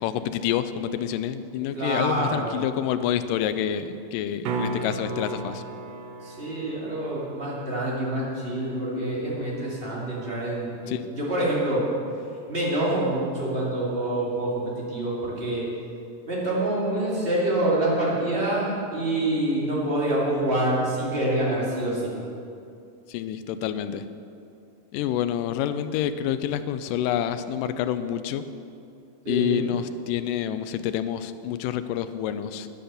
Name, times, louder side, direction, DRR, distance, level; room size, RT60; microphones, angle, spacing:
voice 1, 0.0-5.6 10.9-11.0 23.1-24.0 24.9-28.4 29.3-32.7, left 10 dB, 85° left, 11 dB, 2.2 m, -28 dB
voice 2, 1.7-2.6 6.2-11.9 12.5-15.6 16.3-22.1 29.2-29.6, right 1 dB, 20° right, -5 dB, 2.4 m, -26 dB
sound 1, 4.4-10.5 15.1-15.2, right 3 dB, 90° right, 2.6 m, -36 dB
10.0 x 10.0 x 6.8 m, 2.5 s
omnidirectional pair, 3.9 m